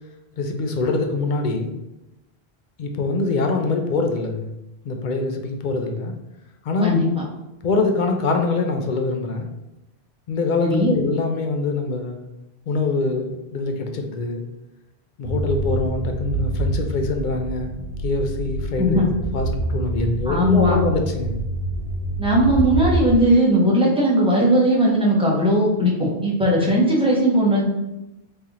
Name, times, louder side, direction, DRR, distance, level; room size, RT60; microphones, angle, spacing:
voice 1, 0.4-1.7 2.8-4.5 4.8-6.1 6.6-6.9 7.6-9.5 10.3-12.2 12.7-14.4 15.2-17.7 18.0-19.0 19.3-21.3, left 3 dB, 60° left, 4 dB, 0.6 m, -24 dB
voice 2, 10.6-10.9 18.8-19.1 20.3-20.8 22.2-27.6, equal, 5° right, -5 dB, 0.8 m, -18 dB
sound 1, 15.2-23.2, right 1 dB, 70° right, 1.6 m, -26 dB
3.3 x 2.8 x 3.6 m, 0.93 s
omnidirectional pair, 1.1 m